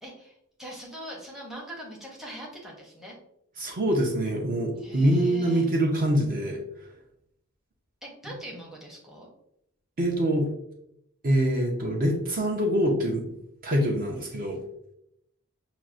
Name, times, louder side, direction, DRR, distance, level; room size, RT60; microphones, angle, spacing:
voice 1, 0.0-3.2 4.8-5.7 8.0-9.3, right 1 dB, ahead, -4 dB, 0.7 m, -42 dB
voice 2, 3.6-6.6 10.0-10.5 11.2-13.2 13.6-14.6, right 1 dB, 40° right, 1 dB, 0.5 m, -24 dB
5.7 x 2.0 x 2.4 m, 0.77 s
head